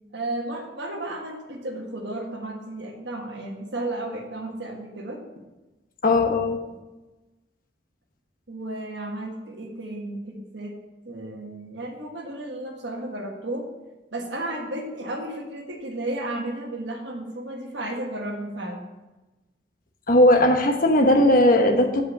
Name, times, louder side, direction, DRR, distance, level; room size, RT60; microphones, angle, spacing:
voice 1, 0.1-5.2 8.5-10.8 11.0-13.7 14.1-18.8, right 1 dB, 70° right, 1 dB, 1.5 m, -33 dB
voice 2, 6.0-6.6 20.1-22.0, left 1 dB, 50° left, 4 dB, 1.1 m, -18 dB
7.6 x 5.2 x 6.9 m, 1.1 s
head